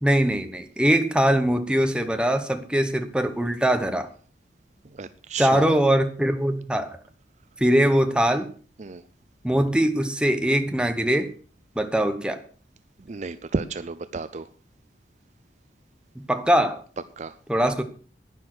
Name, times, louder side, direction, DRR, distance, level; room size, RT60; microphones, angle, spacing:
voice 1, 0.0-4.1 5.4-7.0 7.6-8.5 9.4-11.3 11.8-12.4 16.2-16.8 17.5-17.8, right 1 dB, 5° right, 7 dB, 1.1 m, -22 dB
voice 2, 4.8-5.8 8.8-9.0 13.1-14.5 17.2-17.4, right 4 dB, 40° right, 13 dB, 0.5 m, -32 dB
11.0 x 9.9 x 6.2 m, 0.43 s
head